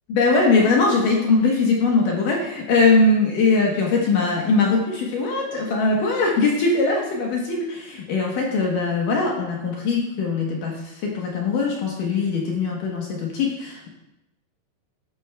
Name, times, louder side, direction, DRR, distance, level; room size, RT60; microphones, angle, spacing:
voice 1, 0.1-13.9, left 3 dB, 70° left, -1 dB, 2.1 m, -21 dB
13.0 x 9.1 x 2.2 m, 0.89 s
omnidirectional pair, 5.1 m